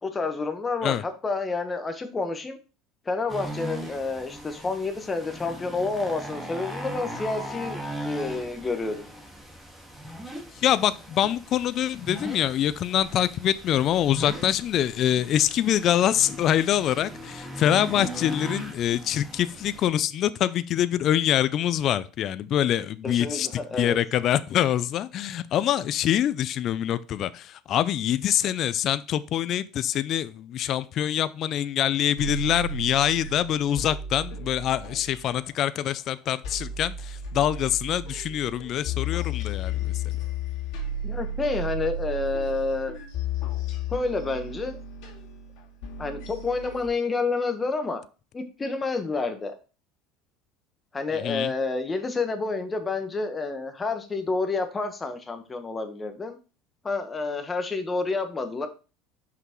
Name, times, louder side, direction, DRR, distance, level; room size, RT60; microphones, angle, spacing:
voice 1, 0.0-2.6 3.0-9.1 18.0-18.3 23.0-24.0 41.0-42.9 43.9-44.8 46.0-48.0 48.3-49.5 50.9-56.4 56.8-58.7, left 3 dB, 20° left, 1.3 m, -29 dB
sound 1, 3.3-19.9, right 1 dB, 5° right, 2.1 m, -39 dB
voice 2, 10.6-23.5 23.8-39.7 51.2-51.5, left 11 dB, 50° left, 0.4 m, -25 dB
sound 2, 32.2-35.5 35.9-36.0 36.4-46.9, left 2 dB, 70° left, 2.1 m, -33 dB
5.7 x 5.7 x 3.1 m
supercardioid pair, 100°, 0 cm